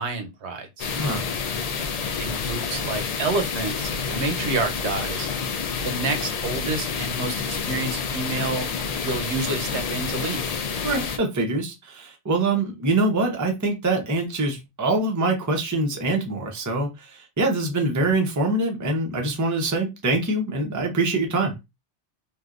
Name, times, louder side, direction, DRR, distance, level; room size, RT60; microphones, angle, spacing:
voice 1, 0.0-0.9 1.9-5.3 5.8-8.7 9.0-10.4, right 3 dB, 75° right, 1.0 m, -29 dB
sound 1, 0.8-11.2, left 5 dB, 60° left, 0.4 m, -28 dB
voice 2, 0.9-1.3 10.8-21.6, right 2 dB, 20° right, 0.6 m, -24 dB
3.3 x 2.6 x 2.4 m
omnidirectional pair, 1.2 m